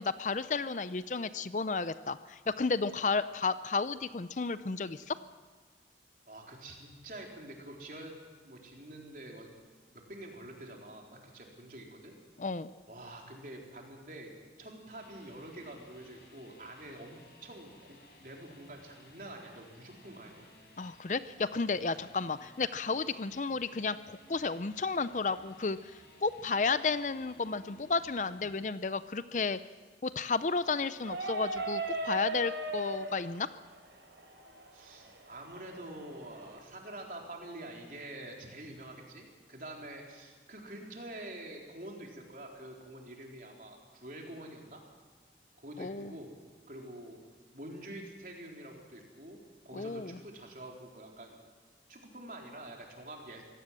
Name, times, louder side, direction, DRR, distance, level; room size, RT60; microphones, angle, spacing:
voice 1, 0.0-5.2 12.4-12.7 20.8-29.6 30.0-33.5 45.8-46.1 49.7-50.2, left 4 dB, 45° left, 14 dB, 0.5 m, -32 dB
voice 2, 6.3-8.2 8.4-9.5 9.9-12.2 12.9-14.3 14.6-20.5 34.7-44.8 45.6-46.3 46.7-47.2 47.5-51.4 51.9-53.4, right 1 dB, 50° right, 0 dB, 4.1 m, -47 dB
sound 1, 14.7-28.5, left 2 dB, 65° left, 5.5 m, -59 dB
sound 2, 31.0-36.6, right 2 dB, 85° right, 4.2 m, -39 dB
24.5 x 17.0 x 7.7 m, 1.5 s
head